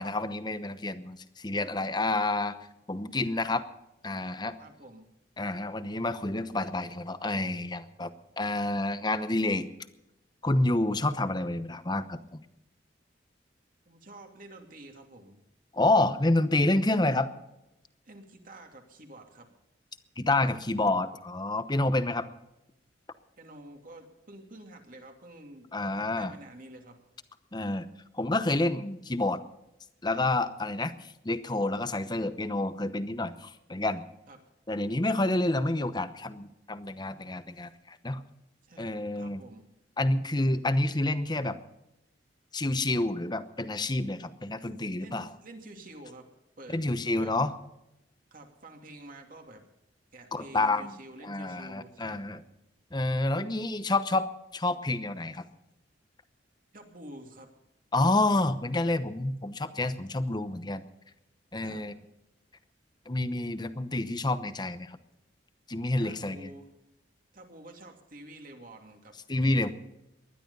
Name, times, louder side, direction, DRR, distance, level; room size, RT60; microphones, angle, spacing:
voice 1, 0.0-2.6 2.9-3.7 4.0-4.6 5.4-8.1 8.4-9.7 10.4-12.4 15.7-17.3 20.2-22.3 25.7-26.3 27.5-27.9 28.1-29.4 30.0-34.0 34.7-38.2 38.8-39.4 40.0-41.6 42.5-45.3 46.7-47.5 50.3-51.0 51.2-52.4 52.9-55.4 57.9-60.8 61.5-61.9 63.1-65.0 65.7-66.5 69.3-69.7, left 2 dB, 25° left, 12 dB, 0.9 m, -28 dB
voice 2, 4.6-5.1 13.9-15.4 18.0-19.5 23.4-27.0 34.3-34.4 38.6-39.6 45.0-46.3 46.6-46.8 47.1-47.3 48.3-49.6 50.1-52.4 56.7-57.5 61.6-61.8 66.0-66.7 67.3-69.6, right 1 dB, 50° right, 3 dB, 2.6 m, -49 dB
19.5 x 12.0 x 5.5 m, 0.89 s
head